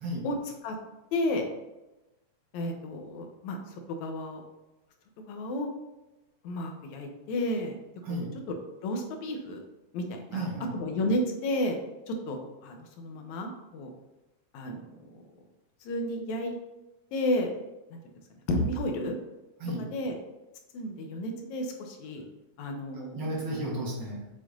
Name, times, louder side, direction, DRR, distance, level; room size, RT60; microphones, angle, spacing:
voice 1, 1.1-1.4 2.5-3.6 4.0-4.4 5.3-5.7 6.4-7.7 8.1-8.6 8.8-9.6 9.9-10.5 10.7-11.8 12.1-13.9 14.5-14.8 15.9-16.5 17.1-17.5 17.9-18.0 18.5-19.1 19.9-20.2 20.7-22.2 22.6-23.2, left 1 dB, 80° left, 3 dB, 2.2 m, -32 dB
voice 2, 10.3-10.7 19.6-19.9 23.1-24.2, right 1 dB, 50° right, -3 dB, 1.5 m, -33 dB
7.4 x 6.4 x 2.6 m, 1.0 s
omnidirectional pair, 3.3 m